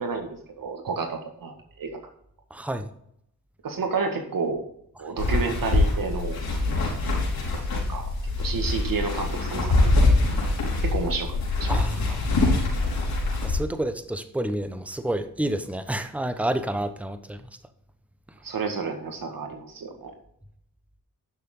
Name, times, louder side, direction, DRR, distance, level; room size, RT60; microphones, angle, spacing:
voice 1, 0.0-2.0 3.6-4.6 5.0-6.4 6.8-6.9 7.9-8.1 8.4-9.7 10.8-11.7 18.4-20.1, right 4 dB, 65° right, 1.9 m, -30 dB
voice 2, 2.5-2.9 11.7-12.3 13.4-17.5, right 1 dB, 5° right, 1.0 m, -29 dB
sound 1, 5.2-13.6, left 2 dB, 80° left, 4.1 m, -24 dB
11.5 x 6.8 x 3.8 m
cardioid pair, 70°, 36 cm